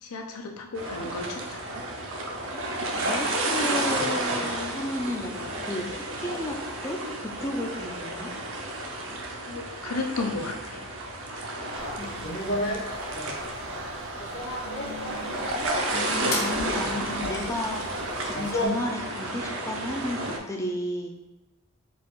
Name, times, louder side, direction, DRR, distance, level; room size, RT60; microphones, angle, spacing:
voice 1, 0.0-1.6 9.1-10.8, left 3 dB, 90° left, 2 dB, 0.6 m, -34 dB
sound 1, 0.7-20.4, right 1 dB, 60° right, 0.6 m, -32 dB
voice 2, 2.9-8.3 12.0-12.8 14.6-15.4 15.9-21.2, left 1 dB, 15° left, 1 dB, 0.3 m, -33 dB
sound 2, 11.7-18.7, left 1 dB, 60° left, 1.0 m, -34 dB
4.2 x 2.3 x 4.4 m, 1.1 s
head